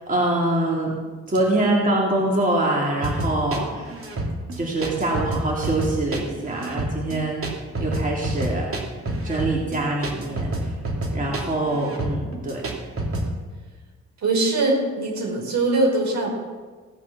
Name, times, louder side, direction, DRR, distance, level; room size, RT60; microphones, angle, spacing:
voice 1, 0.1-0.9 1.3-3.9 4.6-7.4 7.8-8.7 9.2-10.5 11.1-12.6, right 1 dB, 25° right, -3 dB, 3.4 m, -24 dB
sound 1, 3.0-13.3, right 1 dB, 45° right, 2.8 m, -28 dB
voice 2, 14.2-16.3, right 2 dB, 65° right, -1 dB, 5.2 m, -22 dB
17.0 x 8.3 x 7.1 m, 1.4 s
cardioid pair, 90°, 30 cm